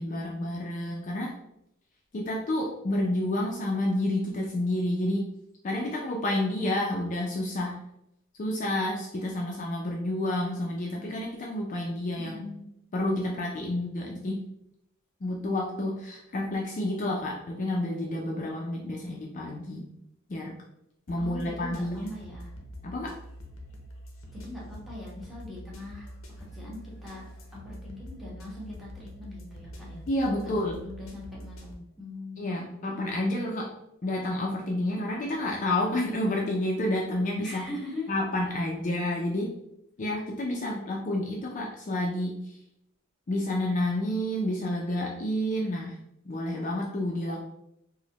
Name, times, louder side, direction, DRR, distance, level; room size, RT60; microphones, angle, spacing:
voice 1, 0.0-1.3 2.1-5.3 5.6-7.8 8.4-12.4 12.9-14.5 15.2-19.9 20.3-20.5 21.1-22.1 22.8-23.2 30.1-30.8 32.4-33.7 34.0-37.7 38.1-39.6 40.0-42.6 43.3-46.0 46.3-47.4, left 1 dB, 35° left, -1 dB, 0.4 m, -29 dB
voice 2, 12.2-12.7 21.2-22.5 24.3-26.1 26.4-30.0 30.4-33.0 37.4-38.1, left 2 dB, ahead, -6 dB, 1.1 m, -42 dB
sound 1, 21.1-31.7, equal, 65° left, 0.7 m, -45 dB
4.7 x 2.1 x 2.9 m, 0.80 s
head